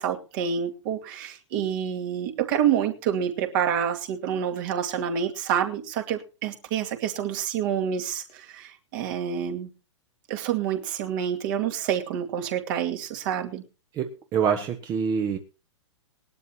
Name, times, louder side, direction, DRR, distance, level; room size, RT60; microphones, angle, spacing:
voice 1, 0.0-9.7 10.3-13.6, right 9 dB, 45° right, 4 dB, 2.2 m, -28 dB
voice 2, 13.9-15.4, right 7 dB, 25° right, 5 dB, 1.3 m, -26 dB
19.5 x 12.0 x 2.9 m, 0.33 s
figure-of-eight pair, 110°, 16 cm